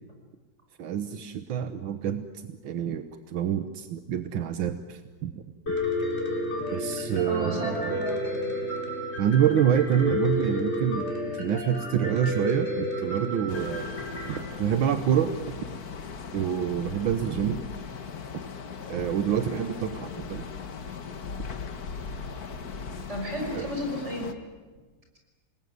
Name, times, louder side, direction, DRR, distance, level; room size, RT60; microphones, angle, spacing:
voice 1, 0.8-2.2 2.5-5.4 6.7-8.0 9.2-13.9 14.3-15.4 16.3-17.6 18.9-20.5 23.5-23.7, right 9 dB, 80° right, 9 dB, 1.8 m, -27 dB
Piano, 5.7-14.4, left 1 dB, 30° left, 4.6 m, -31 dB
voice 2, 7.3-8.2 23.1-24.3, equal, 35° right, 1 dB, 6.5 m, -32 dB
sound 1, 13.5-24.3, left 5 dB, 50° left, 1.9 m, -38 dB
28.0 x 20.5 x 9.5 m, 1.4 s
omnidirectional pair, 2.1 m